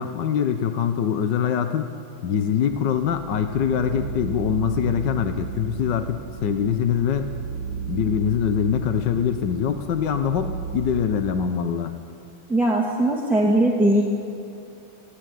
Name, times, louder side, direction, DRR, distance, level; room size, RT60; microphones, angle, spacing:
voice 1, 0.0-1.9 2.2-7.3 7.9-11.9, left 8 dB, 60° left, 7 dB, 1.5 m, -23 dB
sound 1, 2.7-11.0, right 7 dB, 45° right, 1.8 m, -34 dB
voice 2, 12.5-14.0, right 1 dB, ahead, -3 dB, 2.0 m, -19 dB
26.5 x 16.5 x 9.4 m, 2.7 s
omnidirectional pair, 2.4 m